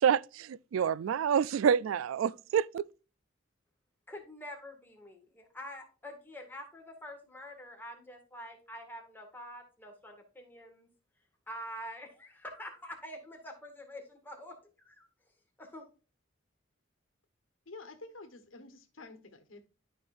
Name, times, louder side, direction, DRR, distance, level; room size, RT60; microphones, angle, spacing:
voice 1, 0.0-2.8, right 8 dB, 85° right, 0.3 m, -28 dB
voice 2, 4.1-10.9 11.5-15.1 15.6-15.9, equal, 10° left, 1.9 m, -46 dB
voice 3, 17.7-19.7, left 3 dB, 85° left, 1.3 m, -49 dB
12.5 x 5.4 x 2.5 m
head